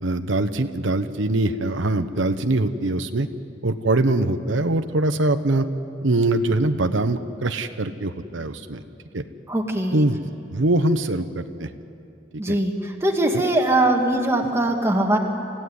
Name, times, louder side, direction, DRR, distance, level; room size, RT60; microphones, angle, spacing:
voice 1, 0.0-3.3 3.6-5.7 6.0-8.8 9.1-9.2 9.9-10.2 10.5-11.7 12.5-12.6, right 2 dB, 90° right, 8 dB, 1.0 m, -22 dB
voice 2, 9.5-10.0 12.4-15.2, right 1 dB, 15° right, 1 dB, 2.1 m, -21 dB
27.0 x 16.0 x 9.6 m, 2.6 s
head